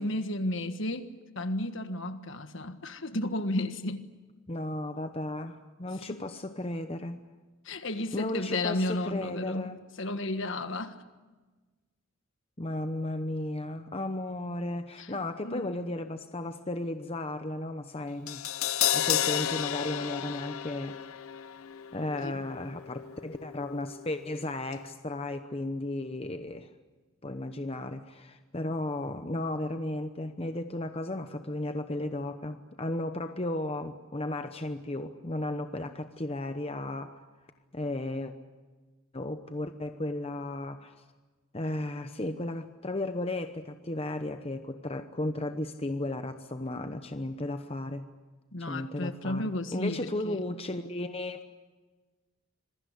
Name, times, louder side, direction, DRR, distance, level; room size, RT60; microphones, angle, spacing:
voice 1, 0.0-4.0 7.6-9.7 10.0-11.0 15.0-15.7 22.2-22.4 48.5-50.4, left 1 dB, 60° left, 1.5 m, -33 dB
voice 2, 4.5-7.2 8.1-9.8 12.6-18.4 18.9-21.0 21.9-26.7 27.2-37.2 37.7-38.3 39.1-41.0 41.5-48.0 48.6-49.4 49.7-51.4, left 1 dB, 25° left, 0.9 m, -34 dB
Crash cymbal, 18.3-24.4 24.7-24.8, left 11 dB, 75° left, 0.8 m, -33 dB
26.5 x 22.0 x 8.3 m
head